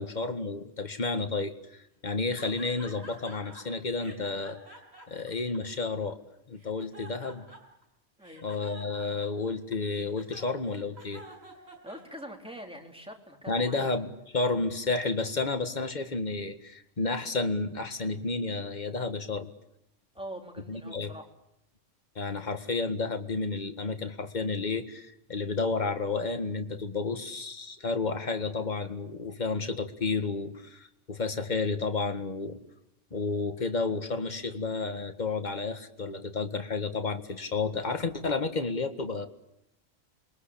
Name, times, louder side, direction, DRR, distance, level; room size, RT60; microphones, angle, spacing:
voice 1, 0.0-4.6 5.1-6.2 6.5-7.4 8.4-11.2 13.5-19.5 20.7-21.1 22.2-32.6 33.1-39.3, left 3 dB, 35° left, 7 dB, 1.8 m, -31 dB
sound 1, 2.4-3.6 4.0-6.1 6.6-7.8 8.2-12.5, right 1 dB, 60° right, 6.0 m, -49 dB
voice 2, 11.7-13.9 20.1-21.3, equal, 5° right, 2 dB, 3.7 m, -44 dB
28.5 x 22.5 x 8.7 m, 0.81 s
omnidirectional pair, 1.3 m